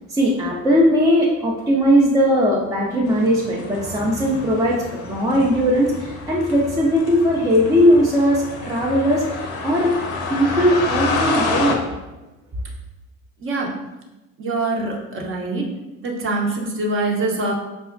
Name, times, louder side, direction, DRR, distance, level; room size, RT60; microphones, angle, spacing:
voice 1, 0.1-9.9 10.3-11.8, equal, 10° right, -4 dB, 0.4 m, -18 dB
sound 1, 3.1-11.7, left 3 dB, 75° left, 0.6 m, -29 dB
voice 2, 13.4-13.7 14.4-15.7 16.0-17.5, right 2 dB, 30° right, 0 dB, 0.7 m, -24 dB
4.8 x 2.0 x 2.5 m, 1.0 s
hypercardioid pair, 70°, 43 cm